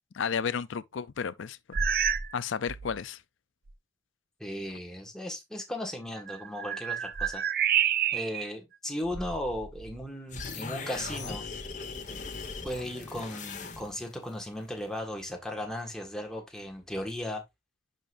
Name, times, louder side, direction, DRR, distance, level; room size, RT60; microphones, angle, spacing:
voice 1, 0.1-1.9 2.3-3.2, left 6 dB, 85° left, 0.5 m, -33 dB
sound 1, 1.7-2.4 2.7-3.0 3.7-3.8 6.2-8.5 9.0-10.1, right 8 dB, 50° right, 0.6 m, -29 dB
voice 2, 4.4-7.4 8.1-11.5 12.6-17.4, left 1 dB, 5° left, 1.6 m, -36 dB
sound 2, 10.3-14.2, left 4 dB, 40° left, 1.3 m, -39 dB
10.5 x 5.2 x 2.6 m
head